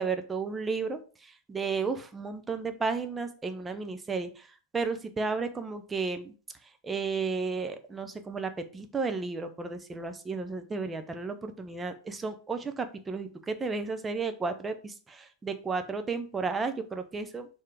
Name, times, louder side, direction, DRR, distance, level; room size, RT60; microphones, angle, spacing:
voice 1, 0.0-6.3 6.8-17.5, right 4 dB, 15° right, 7 dB, 0.8 m, -33 dB
6.6 x 3.6 x 5.0 m, 0.37 s
figure-of-eight pair, 90°, 0 cm